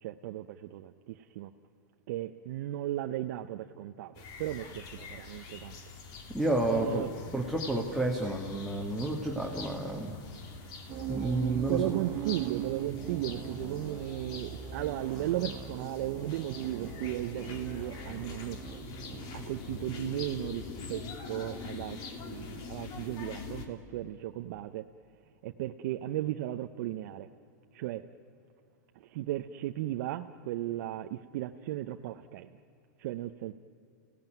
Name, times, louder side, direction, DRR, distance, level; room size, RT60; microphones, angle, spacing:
voice 1, 0.0-1.5 2.1-5.8 6.7-7.1 11.5-18.6 19.3-24.8 25.4-27.3 27.7-28.1 29.0-32.5 33.0-33.6, right 14 dB, 60° right, 6 dB, 0.8 m, -36 dB
sound 1, 4.1-23.7, left 4 dB, 45° left, 2.9 m, -44 dB
voice 2, 6.3-7.1 7.3-10.2 11.1-11.9, right 2 dB, ahead, 0 dB, 2.2 m, -30 dB
sound 2, 10.9-20.8, right 12 dB, 40° right, 1.3 m, -41 dB
29.5 x 17.5 x 9.2 m, 2.6 s
hypercardioid pair, 125°, 10 cm